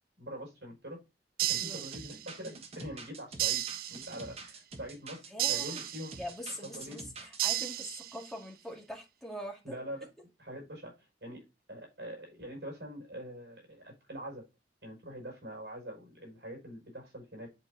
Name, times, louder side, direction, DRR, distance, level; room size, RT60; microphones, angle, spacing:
voice 1, 0.2-1.0 1.5-6.2 6.8-7.0 9.6-10.1 10.4-11.4 11.7-14.4 14.8-17.5, equal, 70° right, 0 dB, 5.3 m, -44 dB
sound 1, 1.4-2.5 3.4-4.4 5.4-6.4 7.4-8.4, right 13 dB, 55° right, 0.4 m, -34 dB
sound 2, 1.9-7.4, right 3 dB, 35° right, 1.3 m, -47 dB
voice 2, 5.3-5.8 6.2-9.7, equal, ahead, 0 dB, 2.0 m, -43 dB
10.0 x 5.1 x 2.6 m, 0.25 s
head